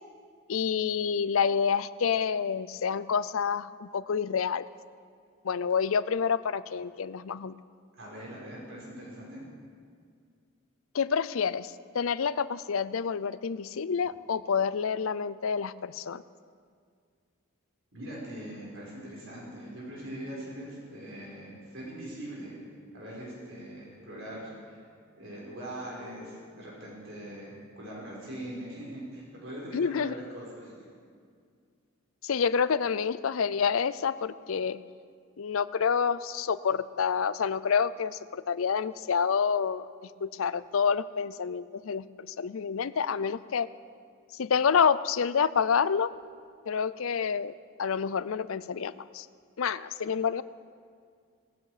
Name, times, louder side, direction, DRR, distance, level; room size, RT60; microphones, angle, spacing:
voice 1, 0.5-4.6 5.4-7.5 10.9-16.2 29.7-30.1 32.2-34.8 35.4-39.9 40.2-43.7 44.3-46.1 46.7-47.5 47.8-49.3 49.6-50.4, left 6 dB, 75° left, 16 dB, 0.5 m, -28 dB
voice 2, 8.0-9.5 17.9-22.6 22.9-24.8 25.1-30.9, right 1 dB, 60° right, -5 dB, 5.1 m, -42 dB
18.0 x 16.0 x 5.0 m, 2.1 s
head